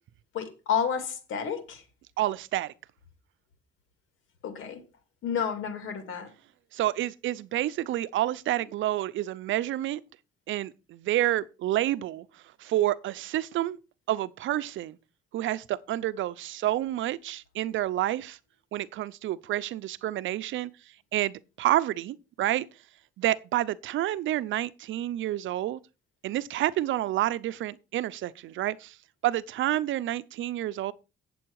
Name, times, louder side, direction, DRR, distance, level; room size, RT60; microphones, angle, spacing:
voice 1, 0.3-1.8 4.4-4.8 5.2-6.3, left 7 dB, 85° left, 2.4 m, -30 dB
voice 2, 2.2-2.7 6.7-10.0 10.5-12.3 12.6-13.8 14.1-15.0 15.3-18.4 18.7-20.7 21.1-22.7 23.2-25.8 26.2-29.0 29.2-30.9, right 14 dB, 75° right, 0.6 m, -29 dB
8.8 x 7.8 x 4.7 m
cardioid pair, 90°, 20 cm